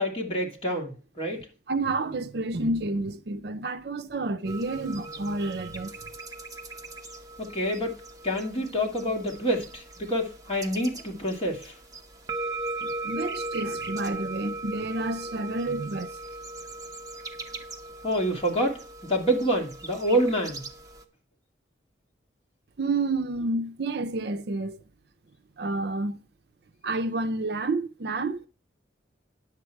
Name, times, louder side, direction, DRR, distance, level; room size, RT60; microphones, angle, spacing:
voice 1, 0.0-1.5 7.4-8.0 8.2-11.7 18.0-18.8 19.1-20.6, equal, 30° left, 2.3 m, -27 dB
voice 2, 1.7-5.9 12.8-16.2 22.8-24.8 25.6-26.2 26.8-28.5, right 2 dB, 55° right, 0.5 m, -29 dB
sound 1, 4.4-21.0, right 2 dB, 20° right, 1.0 m, -39 dB
10.5 x 7.5 x 4.5 m
head